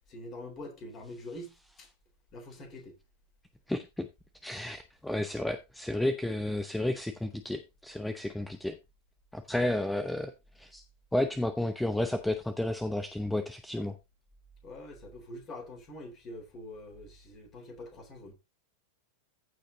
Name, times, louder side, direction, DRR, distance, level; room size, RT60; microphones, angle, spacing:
voice 1, 0.1-1.9 2.3-3.0 14.6-18.3, left 1 dB, 30° left, 3.8 m, -45 dB
voice 2, 3.7-4.1 4.4-8.8 9.3-10.8 11.1-14.0, left 1 dB, 5° left, 0.8 m, -32 dB
14.5 x 5.0 x 3.8 m
figure-of-eight pair, 90°, 0 cm